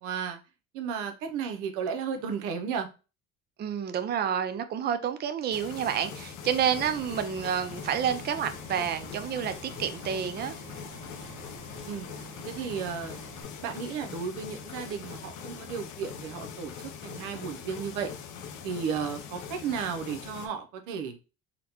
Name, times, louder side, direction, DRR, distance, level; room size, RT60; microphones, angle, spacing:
voice 1, 0.0-0.4 0.7-2.9 11.9-12.1 12.5-13.2 13.6-16.7 17.0-18.1 18.6-21.2, right 6 dB, 85° right, 0.6 m, -34 dB
voice 2, 3.6-10.5, right 8 dB, 35° right, 0.4 m, -29 dB
sound 1, 5.5-20.5, left 7 dB, 75° left, 0.6 m, -42 dB
sound 2, 6.6-13.4, right 2 dB, 60° right, 0.9 m, -47 dB
3.9 x 2.1 x 2.8 m
cardioid pair, 90°, 30 cm